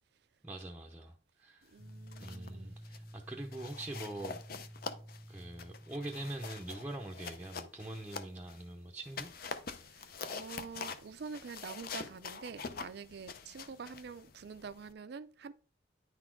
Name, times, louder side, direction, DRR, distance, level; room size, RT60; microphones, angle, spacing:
voice 1, 0.4-1.7 2.2-4.4 5.3-9.3, right 1 dB, 10° right, 0.6 m, -43 dB
voice 2, 1.7-2.8 9.8-15.5, right 5 dB, 55° right, 0.4 m, -46 dB
sound 1, 1.8-7.6, equal, 75° left, 1.8 m, -52 dB
sound 2, 1.9-2.5 2.8-3.1 3.5-8.6 9.0-14.9, left 5 dB, 50° left, 0.6 m, -45 dB
9.7 x 4.1 x 4.5 m
head